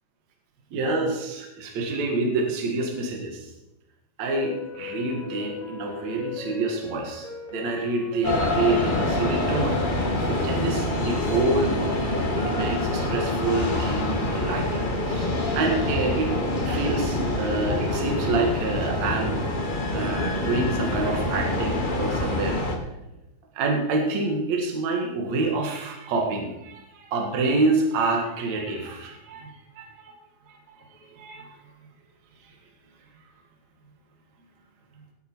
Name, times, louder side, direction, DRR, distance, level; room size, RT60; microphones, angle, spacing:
voice 1, 0.7-3.5 4.2-9.8 10.3-16.3 16.7-22.6 23.5-30.1 30.5-31.5 32.4-32.5, right 3 dB, 60° right, 1 dB, 2.8 m, -27 dB
sound 1, 4.4-12.4, left 4 dB, 85° left, 4.5 m, -37 dB
sound 2, 8.2-22.8, left 1 dB, 40° left, 0.7 m, -26 dB
19.0 x 8.7 x 4.6 m, 0.94 s
omnidirectional pair, 3.7 m